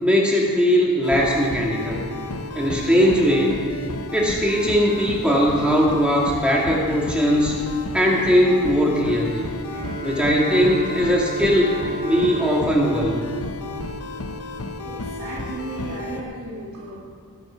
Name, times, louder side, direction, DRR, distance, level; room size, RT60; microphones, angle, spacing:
voice 1, 0.0-2.0 2.5-3.5 4.1-7.6 7.9-9.4 10.0-11.7 12.0-13.2, equal, 5° right, -3 dB, 2.2 m, -19 dB
sound 1, 1.0-16.2, left 2 dB, 80° left, 1.0 m, -32 dB
Bowed string instrument, 9.7-14.4, equal, 40° right, 2.9 m, -35 dB
voice 2, 14.8-17.0, right 1 dB, 85° right, -7 dB, 2.6 m, -34 dB
22.0 x 7.8 x 5.8 m, 2.3 s
head